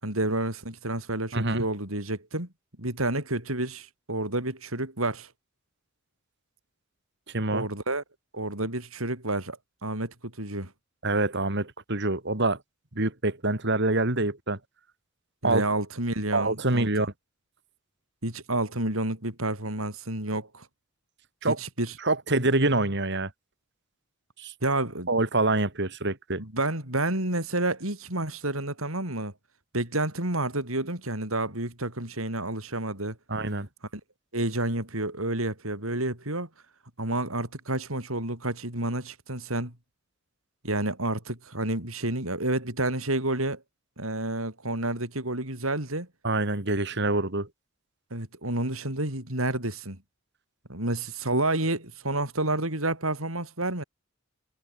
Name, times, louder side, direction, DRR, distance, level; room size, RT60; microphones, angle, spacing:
voice 1, 0.0-2.5 2.8-5.3 7.5-8.0 8.3-10.7 15.4-16.9 18.2-20.7 21.4-21.9 24.6-25.1 26.4-29.3 29.7-33.2 33.9-34.0 34.3-36.5 37.0-39.7 40.6-43.6 44.0-46.1 48.1-50.0 50.7-53.8, right 2 dB, 85° right, 8.0 m, -29 dB
voice 2, 1.3-1.6 7.3-7.7 11.0-12.6 13.0-14.6 15.4-15.6 16.3-17.1 21.4-21.6 22.0-23.3 24.4-24.5 25.1-26.4 33.3-33.7 46.2-47.5, right 2 dB, 55° right, 3.4 m, -26 dB
head